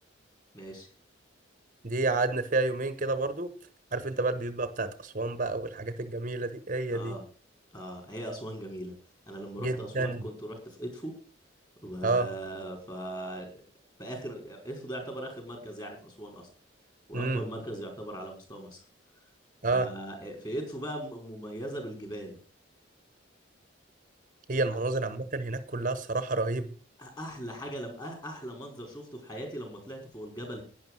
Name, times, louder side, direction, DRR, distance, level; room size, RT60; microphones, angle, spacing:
voice 1, 0.5-0.9 6.9-7.2 7.7-8.9 9.3-11.1 11.8-13.5 14.0-16.5 17.1-18.8 19.7-22.4 27.0-30.6, right 1 dB, 20° left, 3 dB, 5.0 m, -39 dB
voice 2, 1.8-3.5 3.9-7.1 9.6-10.2 12.0-12.3 17.1-17.4 19.6-19.9 24.5-26.7, right 2 dB, 40° right, 12 dB, 1.0 m, -29 dB
11.5 x 10.0 x 6.3 m, 0.39 s
head